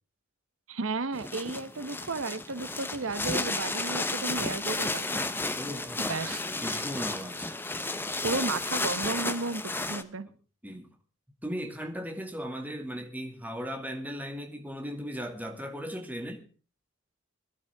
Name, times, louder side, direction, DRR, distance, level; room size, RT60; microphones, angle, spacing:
voice 1, 0.7-5.3 6.0-6.4 8.2-10.3, right 3 dB, 85° right, 1.0 m, -33 dB
sound 1, 1.1-10.0, left 2 dB, 10° left, 0.9 m, -32 dB
voice 2, 5.6-7.5 10.6-10.9 11.4-16.5, equal, 10° right, 2.2 m, -37 dB
22.0 x 12.0 x 3.5 m
head